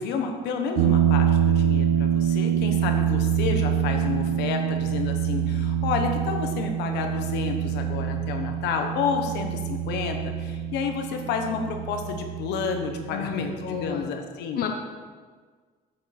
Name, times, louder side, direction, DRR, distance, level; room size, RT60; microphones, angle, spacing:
voice 1, 0.0-14.6, left 5 dB, 85° left, 4 dB, 1.2 m, -30 dB
sound 1, 0.8-13.9, right 9 dB, 85° right, 0.5 m, -25 dB
voice 2, 13.1-14.1 14.6-14.7, left 8 dB, 65° left, 2 dB, 0.9 m, -31 dB
9.0 x 7.8 x 4.3 m, 1.5 s
cardioid pair, 110°, 17 cm